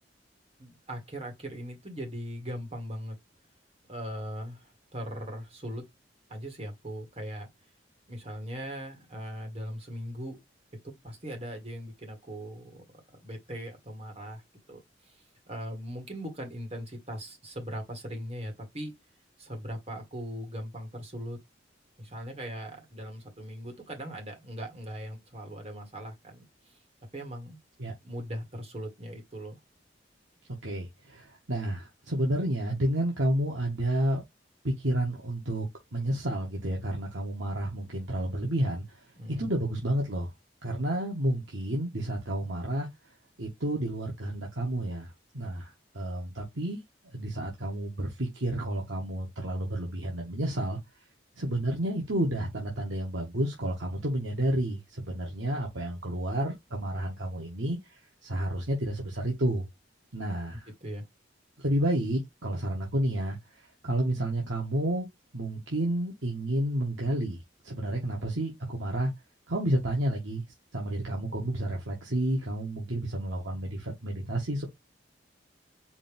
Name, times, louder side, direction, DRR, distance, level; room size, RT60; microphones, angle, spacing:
voice 1, 0.6-3.2 3.9-5.8 6.3-7.5 8.1-10.4 10.8-12.8 13.2-14.4 14.7-14.8 15.1-15.2 15.5-19.0 19.4-21.4 22.0-26.8 27.1-27.6 28.0-29.6 39.2-39.5 60.5-61.1, equal, 35° right, 1.8 m, -39 dB
voice 2, 30.6-34.2 34.6-39.1 39.4-40.3 40.6-42.9 43.4-46.8 47.1-50.8 51.4-59.6 60.1-60.7 61.6-63.4 63.8-65.1 65.3-69.1 69.5-70.4 70.7-74.7, right 1 dB, 80° right, 1.5 m, -30 dB
5.1 x 2.8 x 3.5 m
head